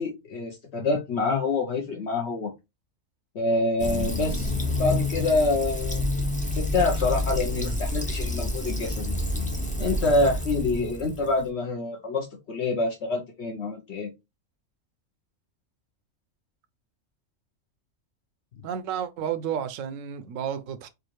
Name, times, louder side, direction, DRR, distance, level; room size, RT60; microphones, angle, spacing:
voice 1, 0.0-2.5 3.3-6.0 6.5-9.0 9.8-14.1, left 3 dB, 60° left, 1.0 m, -26 dB
Fill (with liquid), 3.8-11.5, left 1 dB, 10° left, 0.3 m, -28 dB
voice 2, 18.6-20.9, right 8 dB, 75° right, 0.9 m, -32 dB
4.7 x 2.4 x 3.0 m
omnidirectional pair, 1.4 m